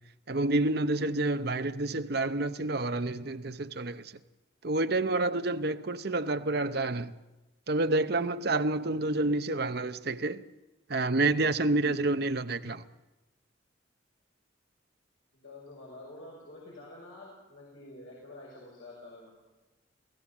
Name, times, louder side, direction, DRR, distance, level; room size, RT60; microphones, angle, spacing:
voice 1, 0.3-4.1 4.6-7.1 7.7-10.4 10.9-12.8, right 2 dB, 55° right, 0.8 m, -28 dB
voice 2, 15.3-19.3, left 2 dB, 90° left, 6.3 m, -48 dB
28.0 x 17.5 x 7.2 m
head